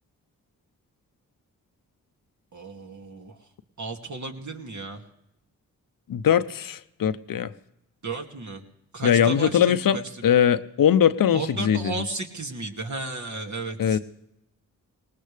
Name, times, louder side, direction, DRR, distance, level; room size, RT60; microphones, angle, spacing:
voice 1, 2.5-3.3 3.8-5.0 8.0-8.6 8.9-10.0 11.3-14.0, right 3 dB, 55° right, 2 dB, 2.4 m, -34 dB
voice 2, 6.1-7.5 9.0-12.0 13.8-14.0, left 9 dB, 70° left, 12 dB, 0.8 m, -21 dB
19.0 x 19.0 x 3.4 m, 0.85 s
supercardioid pair, 45°, 35 cm